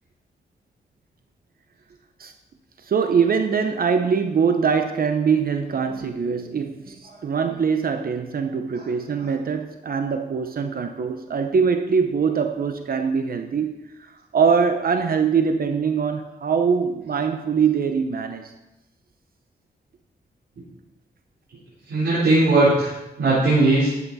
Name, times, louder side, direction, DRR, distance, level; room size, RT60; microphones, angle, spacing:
voice 1, 2.8-18.5, right 6 dB, 60° right, 6 dB, 0.8 m, -23 dB
voice 2, 8.7-9.3 21.9-23.9, right 2 dB, 85° right, -10 dB, 3.9 m, -20 dB
12.0 x 8.4 x 4.1 m, 0.97 s
cardioid pair, 90°, 18 cm